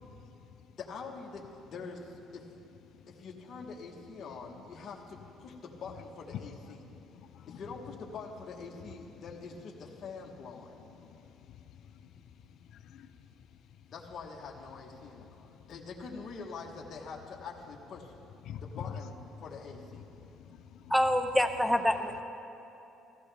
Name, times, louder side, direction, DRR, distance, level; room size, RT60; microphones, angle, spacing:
voice 1, 0.0-0.6 2.9-3.2 4.6-4.7 6.8-7.6 11.0-13.9 15.3-15.7 18.5-19.0 20.2-20.9, left 8 dB, 65° left, 10 dB, 0.5 m, -48 dB
voice 2, 0.8-2.4 3.1-6.8 7.5-10.7 13.9-18.1 18.6-20.1, left 4 dB, 45° left, -1 dB, 1.1 m, -45 dB
voice 3, 20.9-22.2, left 1 dB, ahead, 7 dB, 0.6 m, -26 dB
16.0 x 14.5 x 3.4 m, 3.0 s
cardioid pair, 125°, 0 cm